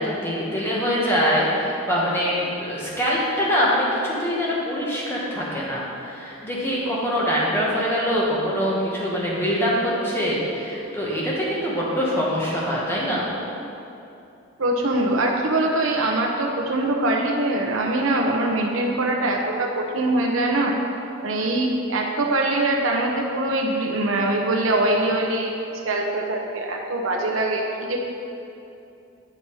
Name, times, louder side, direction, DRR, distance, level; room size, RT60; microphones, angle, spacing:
voice 1, 0.0-13.3, equal, 10° left, -6 dB, 1.4 m, -24 dB
voice 2, 14.6-20.7 21.2-25.6 25.8-28.0, right 2 dB, 85° right, 0 dB, 0.8 m, -23 dB
9.0 x 5.4 x 4.7 m, 2.8 s
head